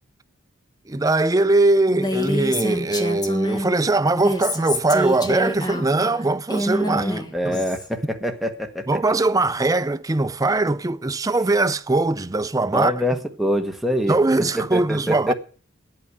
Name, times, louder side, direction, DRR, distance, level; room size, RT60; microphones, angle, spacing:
voice 1, 0.9-7.2 7.4-7.6 8.9-12.9 14.1-15.3, right 2 dB, 15° right, 0.5 m, -21 dB
Female speech woman speaking, 1.9-3.7 4.1-7.9, equal, 20° left, 1.7 m, -26 dB
voice 2, 6.8-9.0 12.7-14.2 14.5-15.3, equal, ahead, 1.5 m, -25 dB
9.7 x 8.7 x 9.6 m
head